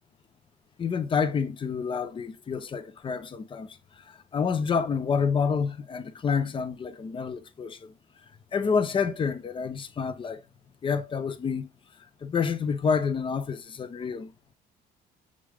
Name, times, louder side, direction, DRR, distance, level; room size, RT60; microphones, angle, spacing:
voice 1, 0.8-3.7 4.1-7.9 8.5-10.4 10.8-11.7 12.2-14.3, left 6 dB, 30° left, 0.6 m, -28 dB
6.2 x 2.5 x 3.4 m
cardioid pair, 110°, 17 cm